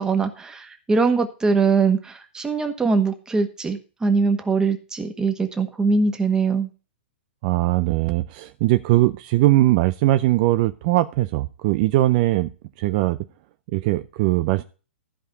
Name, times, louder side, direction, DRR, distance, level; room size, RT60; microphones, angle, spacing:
voice 1, 0.0-6.7, right 4 dB, 10° right, 6 dB, 1.5 m, -22 dB
voice 2, 7.4-12.5 12.8-13.2 13.7-14.6, right 17 dB, 45° right, 12 dB, 0.5 m, -20 dB
14.0 x 5.0 x 5.5 m, 0.35 s
hypercardioid pair, 135°, 6 cm